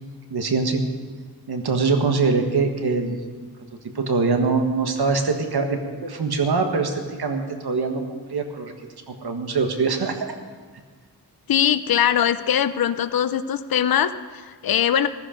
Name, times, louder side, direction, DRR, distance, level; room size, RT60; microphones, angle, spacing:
voice 1, 0.3-0.8 1.5-3.2 3.9-8.7 9.1-10.3, right 4 dB, 70° right, 5 dB, 1.6 m, -23 dB
voice 2, 11.5-15.1, left 9 dB, 60° left, 12 dB, 0.6 m, -21 dB
15.0 x 14.5 x 5.2 m, 1.5 s
wide cardioid pair, 85°, 40 cm